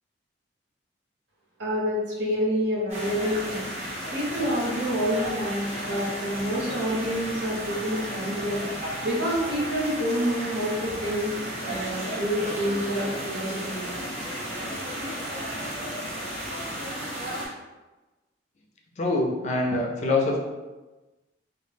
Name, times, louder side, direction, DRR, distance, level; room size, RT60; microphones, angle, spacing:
voice 1, 1.6-3.7 4.1-8.6 9.0-11.3 11.6-13.9, equal, 80° right, -5 dB, 0.8 m, -28 dB
sound 1, 2.9-17.5, right 1 dB, 35° right, 0.6 m, -34 dB
voice 2, 19.0-20.4, left 2 dB, 40° left, -1 dB, 0.4 m, -24 dB
2.0 x 2.0 x 3.2 m, 1.2 s
head